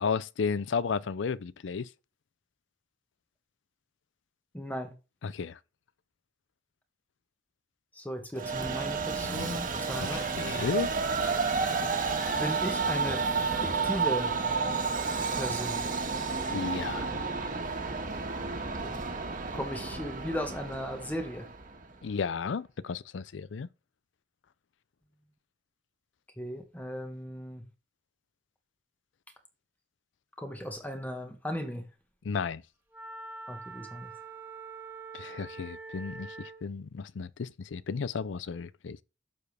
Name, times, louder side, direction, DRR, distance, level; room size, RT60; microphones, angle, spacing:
voice 1, 0.0-1.9 5.2-5.6 9.2-9.6 10.0-10.9 16.5-17.1 22.0-23.7 32.2-32.6 35.1-39.0, left 5 dB, 75° left, 0.5 m, -33 dB
voice 2, 4.5-4.9 7.9-10.8 12.3-13.2 13.6-14.3 15.3-15.9 18.8-19.0 19.5-21.5 26.4-27.6 30.4-31.9 33.5-34.1, equal, 10° left, 1.4 m, -36 dB
Train, 8.4-21.8, right 4 dB, 45° right, 1.6 m, -31 dB
Wind instrument woodwind instrument, 32.9-36.6, right 4 dB, 10° right, 1.8 m, -44 dB
11.5 x 7.0 x 3.4 m
head